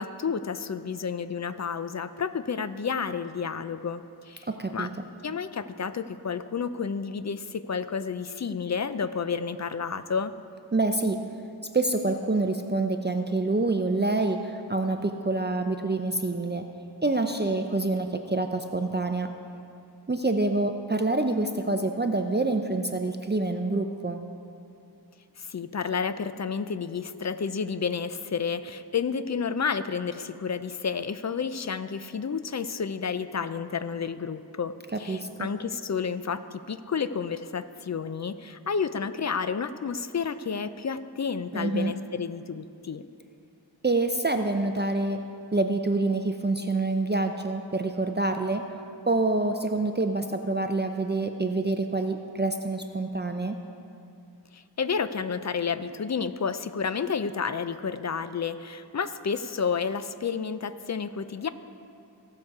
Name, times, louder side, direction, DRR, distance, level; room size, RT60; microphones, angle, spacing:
voice 1, 0.0-4.9 5.2-10.3 25.4-43.0 54.5-61.5, left 6 dB, 45° left, 12 dB, 0.5 m, -31 dB
voice 2, 4.5-4.9 10.7-11.2 11.7-16.7 17.0-19.3 20.1-24.2 34.9-35.5 41.5-41.9 43.8-45.2 45.5-48.6 49.1-53.6, right 2 dB, 25° right, 5 dB, 0.5 m, -26 dB
16.5 x 6.6 x 4.7 m, 2.6 s
wide cardioid pair, 65°, 41 cm